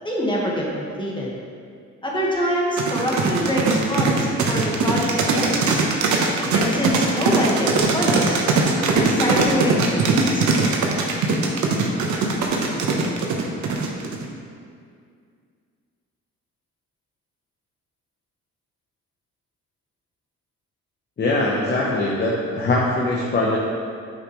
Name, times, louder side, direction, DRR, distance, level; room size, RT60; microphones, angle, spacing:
voice 1, 0.0-1.3 2.0-5.9 6.5-8.4 8.9-10.5, equal, 15° left, -3 dB, 1.6 m, -25 dB
sound 1, 2.8-14.2, right 4 dB, 70° right, 1.0 m, -20 dB
voice 2, 21.2-23.6, left 2 dB, 35° left, -3 dB, 1.0 m, -22 dB
8.1 x 5.7 x 3.2 m, 2.2 s
cardioid pair, 90°, 30 cm